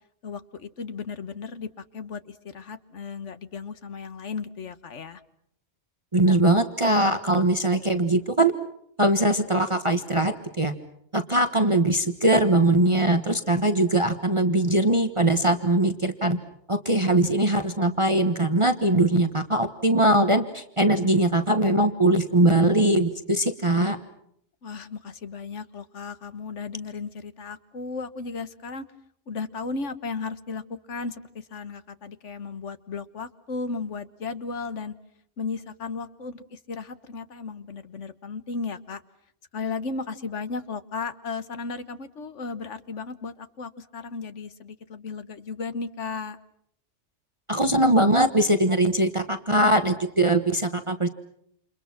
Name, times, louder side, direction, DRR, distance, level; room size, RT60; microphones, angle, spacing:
voice 1, 0.2-5.2 24.6-28.8 29.3-30.6 30.9-34.9 35.4-39.0 39.5-46.4, left 4 dB, 85° left, 12 dB, 1.6 m, -35 dB
voice 2, 6.1-8.5 9.0-10.7 11.1-16.4 16.7-24.0 47.5-51.1, right 1 dB, 25° right, 8 dB, 1.4 m, -21 dB
29.0 x 28.5 x 5.9 m, 0.69 s
omnidirectional pair, 1.2 m